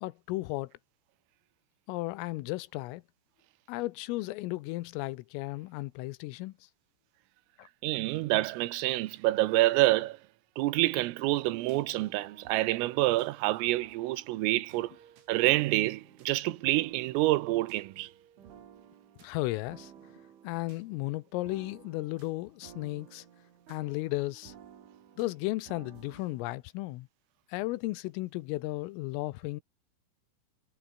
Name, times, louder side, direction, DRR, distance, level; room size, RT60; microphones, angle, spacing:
voice 1, 0.0-0.7 1.9-3.0 3.7-6.5 7.6-7.7 19.2-19.9 20.4-23.3 23.7-24.5 25.2-27.1 27.5-29.6, left 20 dB, 85° left, 3.4 m, -34 dB
voice 2, 7.8-10.2 10.6-14.9 15.3-18.1, right 18 dB, 85° right, 3.6 m, -27 dB
sound 1, 10.8-26.4, right 9 dB, 65° right, 5.5 m, -55 dB
omnidirectional pair, 6.0 m